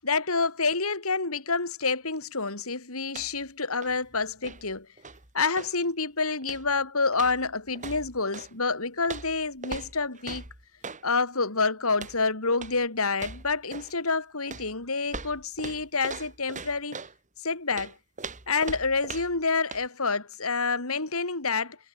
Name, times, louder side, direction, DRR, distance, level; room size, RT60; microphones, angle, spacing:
voice 1, 0.0-4.9 5.3-10.4 11.0-17.0 17.4-18.0 18.5-21.8, left 4 dB, 75° left, 3.9 m, -28 dB
sound 1, 3.1-3.5 3.7-5.8 6.4-6.8 7.1-8.5 9.0-11.1 11.9-12.2 12.5-12.8 13.1-14.0 14.5-17.2 17.7-19.4 19.7-19.9, right 4 dB, 35° right, 4.5 m, -41 dB
head